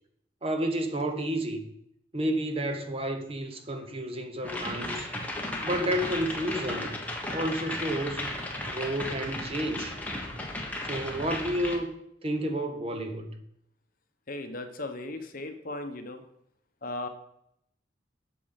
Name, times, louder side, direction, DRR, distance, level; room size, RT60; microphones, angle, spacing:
voice 1, 0.4-1.6 2.1-5.1 5.6-7.0 7.3-8.3 8.7-9.9 10.8-11.9 12.2-13.4, right 1 dB, 30° right, 0.9 m, -31 dB
sound 1, 4.4-11.8, left 1 dB, 10° left, 1.2 m, -35 dB
voice 2, 14.3-16.2 16.8-17.1, left 2 dB, 45° left, 0.9 m, -37 dB
8.3 x 7.0 x 5.7 m
head